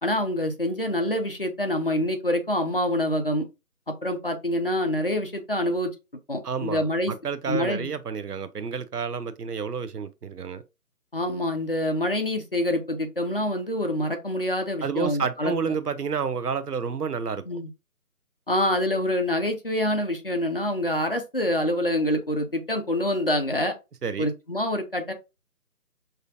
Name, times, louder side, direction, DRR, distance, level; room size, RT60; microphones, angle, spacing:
voice 1, 0.0-3.5 3.9-5.9 6.3-7.1 7.5-7.9 11.1-15.5 17.5-17.7 18.5-23.7 24.2-25.1, left 1 dB, 40° left, 0.6 m, -26 dB
voice 2, 6.4-10.6 14.8-17.4 24.0-24.3, right 6 dB, 85° right, 0.7 m, -30 dB
5.5 x 2.5 x 2.5 m
figure-of-eight pair, 155°, 45 cm